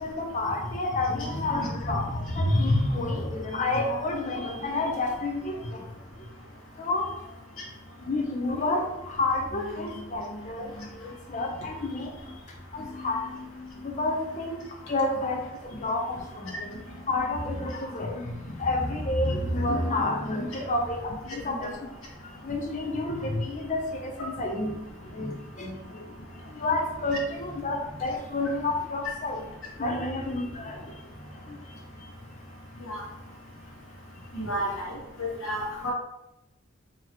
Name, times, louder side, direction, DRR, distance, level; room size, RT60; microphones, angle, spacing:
voice 1, 0.0-5.8 6.8-7.1 8.1-10.7 11.0-12.1 12.7-13.2 13.8-14.6 14.9-15.4 15.8-16.7 17.1-18.3 18.6-21.9 22.4-24.7 25.1-25.8 26.6-29.4 29.8-30.8, left 2 dB, 35° left, 2 dB, 0.6 m, -29 dB
voice 2, 34.3-34.9 35.2-35.9, equal, 70° left, -3 dB, 1.2 m, -31 dB
3.9 x 2.9 x 2.9 m, 0.89 s
head